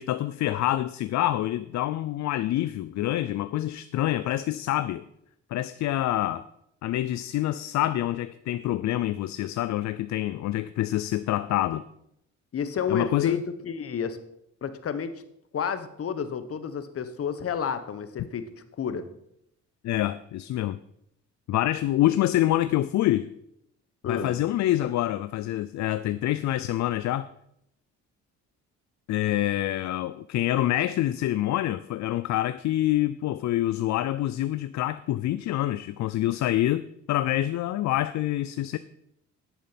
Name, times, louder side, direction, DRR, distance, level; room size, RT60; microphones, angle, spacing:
voice 1, 0.0-5.0 5.5-6.4 6.8-11.8 12.9-13.4 19.8-20.8 21.5-23.3 24.0-27.3 29.1-38.8, left 14 dB, 65° left, 0.5 m, -26 dB
voice 2, 12.5-14.2 14.6-15.2 15.5-18.4 18.8-19.0 24.0-24.4, left 7 dB, 50° left, 1.2 m, -30 dB
10.5 x 7.5 x 5.9 m
cardioid pair, 90°, 30 cm